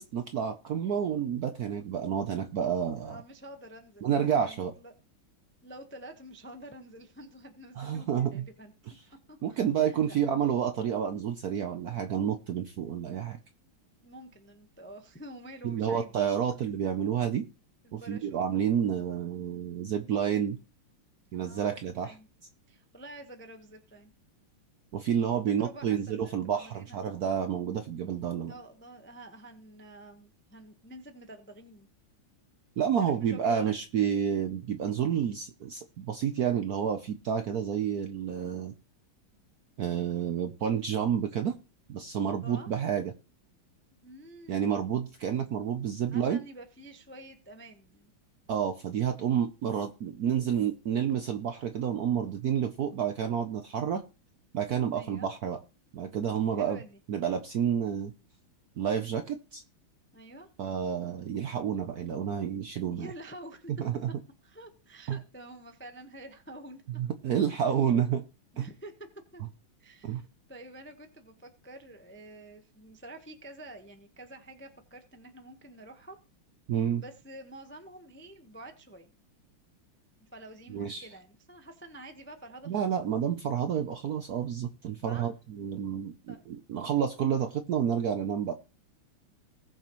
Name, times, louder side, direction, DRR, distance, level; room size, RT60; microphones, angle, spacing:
voice 1, 0.0-3.2 4.0-4.7 7.8-8.4 9.4-13.4 15.6-17.5 17.9-20.6 21.3-22.2 24.9-28.5 32.8-38.7 39.8-41.5 41.9-43.1 44.5-46.4 48.5-54.0 54.5-55.6 55.9-56.8 57.1-58.1 58.8-59.6 60.6-63.1 63.8-64.1 65.1-65.2 67.0-68.2 68.6-68.7 70.0-70.2 76.7-77.0 80.7-81.1 82.7-88.5, right 8 dB, 65° right, 8 dB, 0.9 m, -29 dB
voice 2, 2.9-4.9 5.6-8.7 9.3-9.6 9.9-10.2 14.0-16.1 16.5-16.6 17.8-18.4 21.3-22.3 22.7-24.1 25.2-27.0 28.5-31.9 33.0-33.7 42.4-42.7 44.0-44.9 46.1-48.1 54.9-55.3 56.6-57.0 60.1-60.5 62.9-63.7 64.4-66.8 67.7-67.8 68.5-68.9 69.3-69.4 69.8-76.2 76.9-79.1 80.2-83.0 85.0-85.3 86.3-86.5, right 1 dB, 15° left, 6 dB, 0.5 m, -48 dB
19.5 x 6.7 x 3.1 m, 0.32 s
omnidirectional pair, 2.3 m